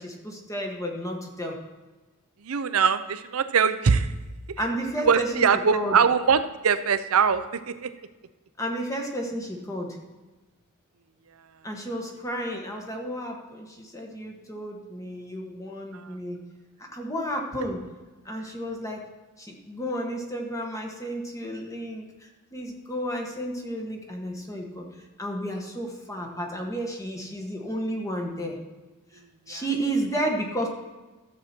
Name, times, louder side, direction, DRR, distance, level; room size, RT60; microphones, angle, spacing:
voice 1, 0.0-1.6 4.6-5.5 5.7-6.0 8.6-10.0 11.6-16.4 16.8-17.8 18.2-19.1 19.4-28.6 29.5-30.7, equal, 15° left, 1 dB, 1.4 m, -32 dB
voice 2, 2.4-4.1 5.0-7.9 15.9-16.0 29.5-29.6, right 6 dB, 80° right, 11 dB, 0.6 m, -22 dB
13.0 x 7.4 x 4.4 m, 1.2 s
head